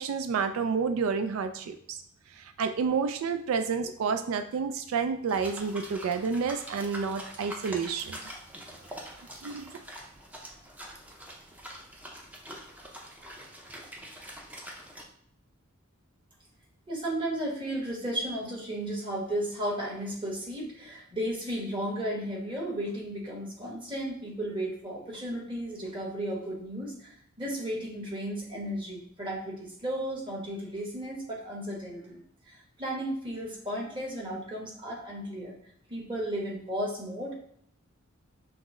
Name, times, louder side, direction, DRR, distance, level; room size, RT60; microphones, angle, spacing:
voice 1, 0.0-2.0 2.4-8.2 9.4-9.7, right 5 dB, 70° right, 9 dB, 0.3 m, -30 dB
sound 1, 5.3-15.0, right 1 dB, 5° right, 0.6 m, -44 dB
voice 2, 16.9-35.5 35.9-37.3, right 1 dB, 25° right, -3 dB, 1.2 m, -34 dB
5.8 x 2.1 x 3.7 m, 0.66 s
head